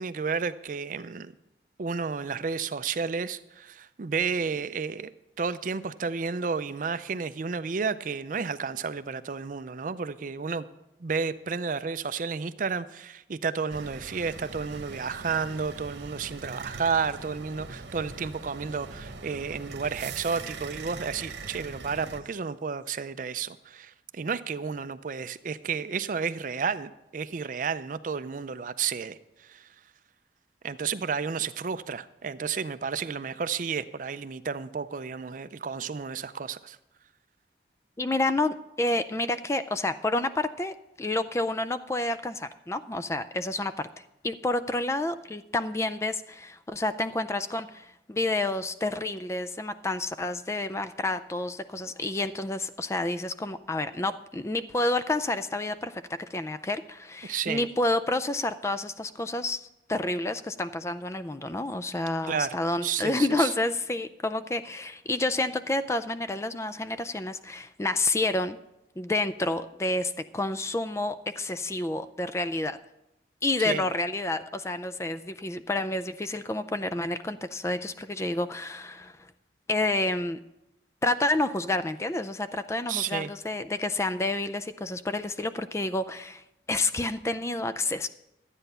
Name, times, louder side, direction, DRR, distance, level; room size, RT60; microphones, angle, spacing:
voice 1, 0.0-1.3 1.8-5.1 5.4-10.6 11.0-29.7 30.6-36.8 57.2-57.7 62.2-62.6 62.8-63.5 73.6-73.9 82.9-83.3, right 5 dB, 50° right, 13 dB, 0.4 m, -31 dB
sound 1, 13.7-22.2, right 4 dB, 80° right, 1.1 m, -42 dB
voice 2, 38.0-68.6 69.0-72.8 73.4-79.2 79.7-80.4 81.0-88.1, left 2 dB, 15° left, 12 dB, 0.3 m, -29 dB
12.5 x 9.1 x 5.5 m, 0.89 s
head